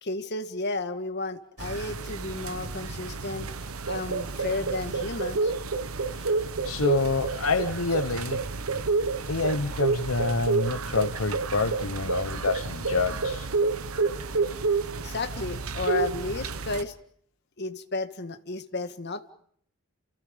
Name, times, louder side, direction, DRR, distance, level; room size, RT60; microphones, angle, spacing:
voice 1, 0.0-3.5 3.8-5.5 15.0-16.9 17.6-19.3, left 2 dB, 55° left, 9 dB, 1.7 m, -33 dB
sound 1, 1.6-16.8, right 4 dB, 85° right, 1.2 m, -29 dB
voice 2, 6.1-8.4 9.3-13.5, left 3 dB, 75° left, 10 dB, 1.0 m, -28 dB
30.0 x 28.5 x 5.2 m, 0.65 s
head